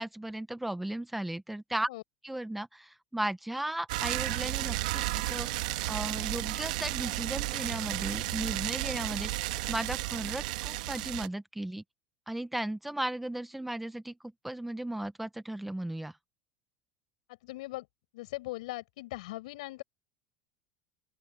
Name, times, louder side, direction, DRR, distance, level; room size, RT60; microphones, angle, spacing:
voice 1, 0.0-1.9 2.2-5.5 5.9-11.8 12.3-14.2 14.4-16.1, right 1 dB, 5° right, 0.7 m, -36 dB
sound 1, 3.9-11.3, right 17 dB, 90° right, 1.3 m, -33 dB
voice 2, 17.4-17.9 18.1-19.8, left 19 dB, 80° left, 7.5 m, -39 dB
open air
cardioid pair, 175°, 4 cm